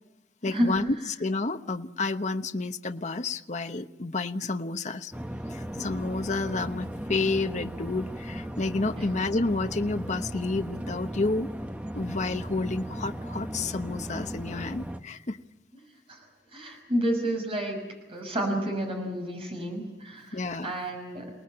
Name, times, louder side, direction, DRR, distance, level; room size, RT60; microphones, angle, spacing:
voice 1, 0.4-5.1 5.5-11.5 11.9-15.4 20.3-20.7, left 3 dB, 40° left, 7 dB, 1.0 m, -30 dB
sound 1, 5.1-15.0, equal, 10° right, 1.0 m, -37 dB
voice 2, 16.5-17.8 18.1-21.3, right 1 dB, 30° right, 2 dB, 6.1 m, -30 dB
29.0 x 19.0 x 8.8 m, 1.1 s
head